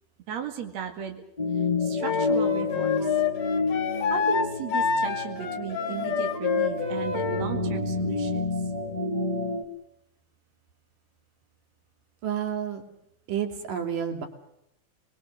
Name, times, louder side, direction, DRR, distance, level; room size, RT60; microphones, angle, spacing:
voice 1, 0.3-1.2 1.8-3.1 4.1-8.5, right 8 dB, 60° right, 4 dB, 3.2 m, -35 dB
sound 1, 1.4-9.6, left 3 dB, 20° left, 1.2 m, -29 dB
Wind instrument woodwind instrument, 2.0-7.5, left 7 dB, 75° left, 3.4 m, -28 dB
voice 2, 12.2-12.8 13.3-14.3, right 8 dB, 90° right, 4 dB, 4.2 m, -30 dB
27.0 x 22.0 x 6.7 m, 0.82 s
omnidirectional pair, 3.7 m